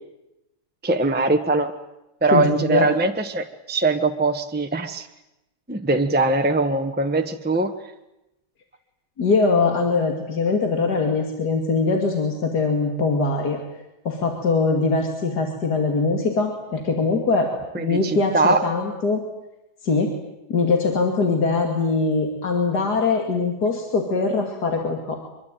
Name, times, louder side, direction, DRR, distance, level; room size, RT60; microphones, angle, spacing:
voice 1, 0.8-1.7 2.2-5.1 5.7-7.7 17.7-18.6, right 3 dB, 5° right, 6 dB, 1.1 m, -21 dB
voice 2, 2.3-2.9 9.2-13.6 14.0-19.2 19.8-20.1 20.5-25.2, left 4 dB, 70° left, 3 dB, 3.1 m, -22 dB
24.5 x 23.0 x 9.1 m, 0.93 s
omnidirectional pair, 1.8 m